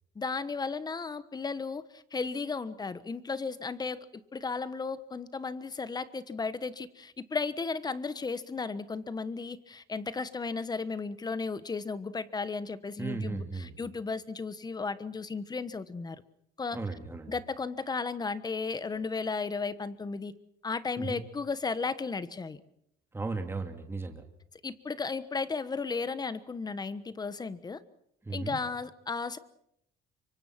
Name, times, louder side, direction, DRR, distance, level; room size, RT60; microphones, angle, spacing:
voice 1, 0.1-16.2 16.6-16.8 17.3-20.3 20.6-22.6 24.6-27.8 28.3-29.4, left 4 dB, 25° left, 15 dB, 1.3 m, -34 dB
voice 2, 13.0-13.7 16.7-17.3 21.0-21.2 23.1-24.2 28.2-28.6, right 3 dB, 15° right, 5 dB, 2.5 m, -36 dB
26.0 x 24.0 x 6.0 m, 0.76 s
cardioid pair, 110°, 17 cm